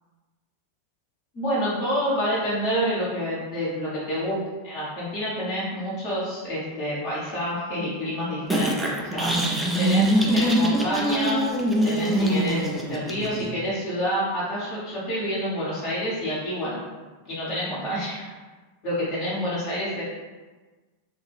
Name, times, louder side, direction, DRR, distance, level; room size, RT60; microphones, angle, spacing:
voice 1, 1.3-4.4 4.6-9.5 9.8-11.4 11.8-16.8 17.3-18.3 18.8-20.0, equal, 40° left, -9 dB, 0.9 m, -28 dB
sound 1, 8.5-13.5, right 1 dB, 5° right, 0.4 m, -23 dB
2.3 x 2.2 x 3.4 m, 1.3 s
figure-of-eight pair, 90°, 0 cm